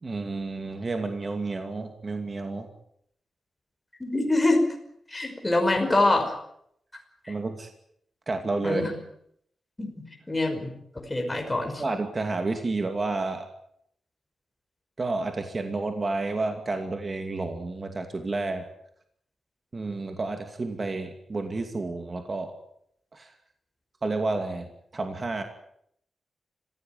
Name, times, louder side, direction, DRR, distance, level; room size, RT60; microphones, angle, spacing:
voice 1, 0.0-2.7 7.3-7.7 8.3-8.8 11.8-13.5 15.0-18.6 19.7-22.5 23.1-23.3 24.0-24.7 24.9-25.4, right 3 dB, 30° right, 6 dB, 2.5 m, -30 dB
voice 2, 4.0-4.6 5.1-6.3 7.2-7.3 8.6-9.0 9.8-11.8, left 2 dB, 15° left, 2 dB, 5.6 m, -25 dB
26.0 x 16.5 x 9.5 m, 0.71 s
wide cardioid pair, 130°, 0 cm